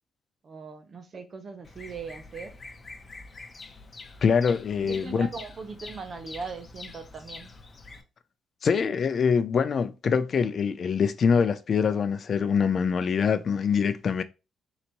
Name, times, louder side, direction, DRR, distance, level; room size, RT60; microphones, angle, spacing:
voice 1, 0.4-2.6 4.8-7.5, right 5 dB, 45° right, 0.9 m, -40 dB
Bird vocalization bird call bird song, 1.6-8.0, left 3 dB, 30° left, 0.9 m, -45 dB
voice 2, 4.2-5.3 8.6-14.2, left 6 dB, 50° left, 0.5 m, -24 dB
4.0 x 2.7 x 4.5 m
cardioid pair, 90°, 0 cm